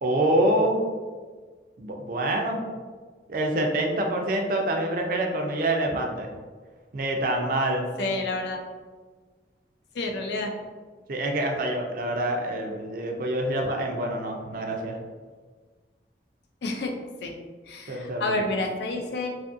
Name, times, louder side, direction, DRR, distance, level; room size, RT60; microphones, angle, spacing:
voice 1, 0.0-0.8 1.8-2.6 3.3-6.3 6.9-7.9 11.1-15.0 17.9-18.4, right 1 dB, 50° right, 2 dB, 0.4 m, -26 dB
voice 2, 8.0-8.6 9.9-10.5 16.6-16.9 17.2-17.3 17.7-19.3, left 2 dB, 70° left, 2 dB, 0.4 m, -29 dB
2.6 x 2.5 x 2.5 m, 1.4 s
head